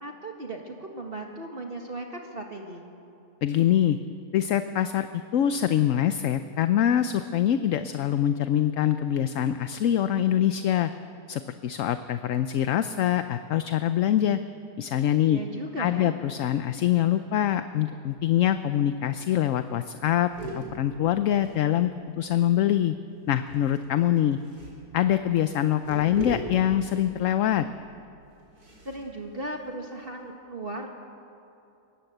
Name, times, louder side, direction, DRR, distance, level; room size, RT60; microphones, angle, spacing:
voice 1, 0.0-2.9 15.3-16.1 28.9-30.9, right 2 dB, 35° right, 2 dB, 1.8 m, -37 dB
voice 2, 3.4-4.0 4.3-10.9 11.3-14.4 14.8-15.4 15.8-20.3 20.5-21.9 22.2-22.9 23.3-24.4 24.9-27.7, left 11 dB, 65° left, 10 dB, 0.9 m, -24 dB
sound 1, 19.0-19.1 19.3-19.5 19.9-22.2 23.3-30.2, right 1 dB, 85° right, 4.7 m, -42 dB
21.5 x 18.0 x 7.9 m, 2.8 s
omnidirectional pair, 1.6 m